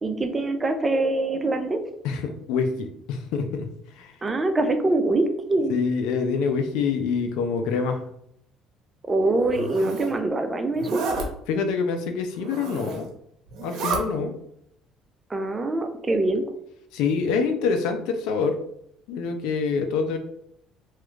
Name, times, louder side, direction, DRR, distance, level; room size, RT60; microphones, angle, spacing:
voice 1, 0.0-1.8 4.2-5.8 9.1-11.0 15.3-16.4, right 2 dB, 25° right, 7 dB, 0.4 m, -24 dB
voice 2, 2.0-4.1 5.7-8.0 11.5-13.1 13.6-14.3 16.9-18.6 19.1-20.2, left 5 dB, 80° left, 7 dB, 0.4 m, -26 dB
Zipper (clothing), 9.3-10.1 10.7-11.3 12.4-13.1 13.5-14.0, right 4 dB, 70° right, 0.7 m, -31 dB
3.0 x 2.3 x 3.1 m, 0.72 s
supercardioid pair, 90°, 0 cm